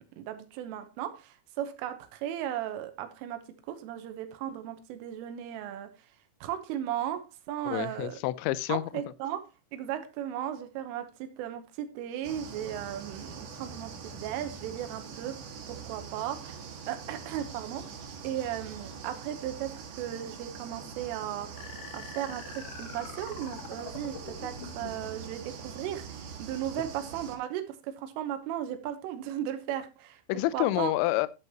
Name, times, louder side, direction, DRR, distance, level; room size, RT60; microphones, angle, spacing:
voice 1, 0.0-5.9 6.4-8.2 8.7-16.6 16.9-17.9 18.2-21.6 21.9-30.2 30.5-30.9, right 11 dB, 85° right, 3.6 m, -36 dB
voice 2, 7.7-8.8 30.3-31.3, left 16 dB, 80° left, 2.7 m, -28 dB
sound 1, 12.2-27.4, right 6 dB, 55° right, 2.9 m, -43 dB
sound 2, 21.6-25.1, left 6 dB, 65° left, 2.2 m, -45 dB
11.5 x 9.2 x 2.9 m
omnidirectional pair, 5.7 m